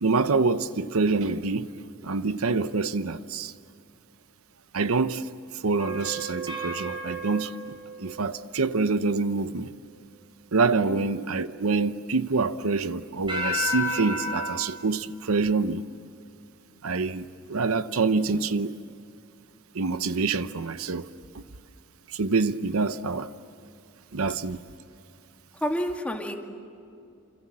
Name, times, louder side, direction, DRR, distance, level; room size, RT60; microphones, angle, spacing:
voice 1, 0.0-1.7 2.0-3.5 4.7-5.3 5.6-9.7 10.5-15.8 16.8-18.8 19.7-21.1 21.3-21.4 22.1-23.3 24.1-24.6, right 4 dB, 80° right, 0.8 m, -26 dB
sound 1, 5.8-8.7 13.3-14.5, left 1 dB, 25° right, 6.0 m, -32 dB
voice 2, 25.5-26.4, equal, 5° left, 2.2 m, -29 dB
28.5 x 27.5 x 7.5 m
head